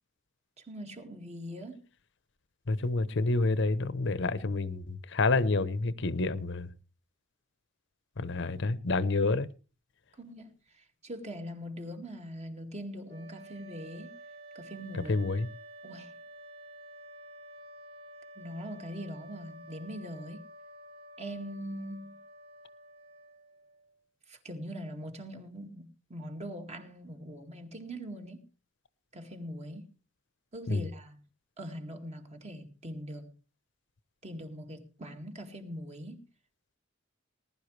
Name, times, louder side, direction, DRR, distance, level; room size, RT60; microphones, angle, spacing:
voice 1, 0.7-1.8 10.2-10.5 10.8-14.1 14.5-15.2 15.8-16.1 18.4-20.4 21.2-22.2 24.3-28.4 29.1-29.8 30.5-31.2 31.6-33.3 34.2-36.2, equal, 35° right, 2.2 m, -42 dB
voice 2, 2.7-6.7 8.2-9.5 15.1-15.5 30.7-30.8, left 3 dB, 65° left, 0.9 m, -28 dB
sound 1, 13.0-24.0, right 1 dB, 75° right, 3.3 m, -50 dB
19.5 x 11.5 x 3.3 m
head